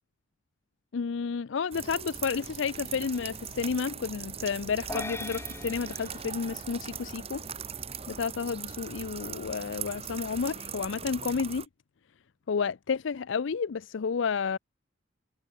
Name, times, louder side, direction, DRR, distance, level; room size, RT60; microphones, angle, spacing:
voice 1, 0.9-7.4 8.1-11.7 12.5-14.6, left 5 dB, 70° left, 0.5 m, -31 dB
sound 1, 1.7-11.7, right 7 dB, 30° right, 1.7 m, -40 dB
sound 2, 4.9-7.4, left 2 dB, 15° left, 2.7 m, -41 dB
head